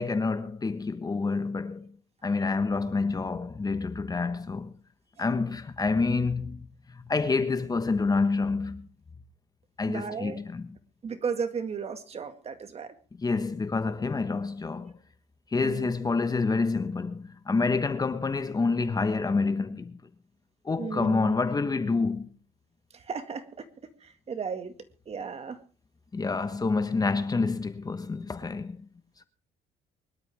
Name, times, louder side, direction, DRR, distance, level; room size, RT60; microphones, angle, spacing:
voice 1, 0.0-1.9 2.2-4.7 5.2-6.7 6.9-8.9 9.8-10.8 13.2-15.0 15.5-20.0 20.6-22.3 26.1-28.8, left 4 dB, 20° left, 1.3 m, -28 dB
voice 2, 9.9-10.4 11.0-12.9 15.6-15.9 20.8-21.4 22.9-23.7 24.0-24.8 25.1-25.6, right 6 dB, 40° right, 2.0 m, -35 dB
23.5 x 12.0 x 3.5 m
cardioid pair, 110°, 17 cm